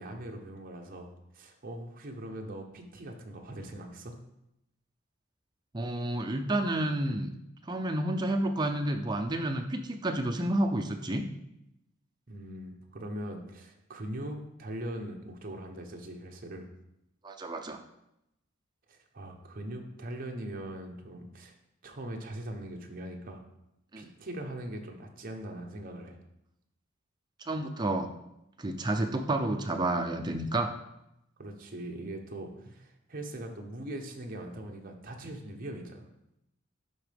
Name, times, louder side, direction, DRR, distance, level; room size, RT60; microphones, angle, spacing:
voice 1, 0.0-4.2 12.3-16.7 18.9-21.5 21.8-23.4 24.0-26.2 31.4-36.1, right 1 dB, 45° right, 2 dB, 0.9 m, -41 dB
voice 2, 5.7-7.3 7.7-11.3 17.2-17.8 23.9-24.1 27.4-28.1 28.6-30.7, right 1 dB, 20° right, 4 dB, 0.5 m, -30 dB
10.5 x 3.7 x 3.5 m, 0.85 s
head